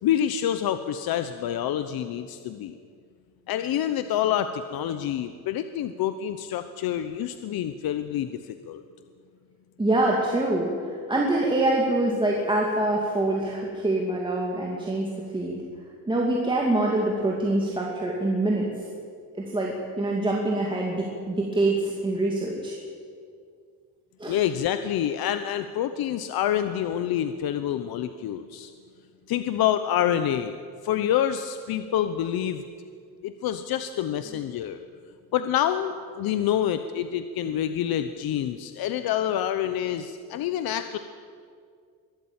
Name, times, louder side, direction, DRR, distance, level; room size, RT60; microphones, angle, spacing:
voice 1, 0.0-2.8 3.5-8.8 24.3-28.7 29.3-30.6 30.8-32.6 33.2-34.8 35.3-41.0, left 10 dB, 80° left, 10 dB, 0.9 m, -27 dB
voice 2, 9.8-15.6 16.1-18.7 19.3-22.8 24.2-24.4, right 2 dB, 15° right, -3 dB, 2.5 m, -25 dB
22.5 x 13.0 x 8.9 m, 2.2 s
cardioid pair, 150°, 36 cm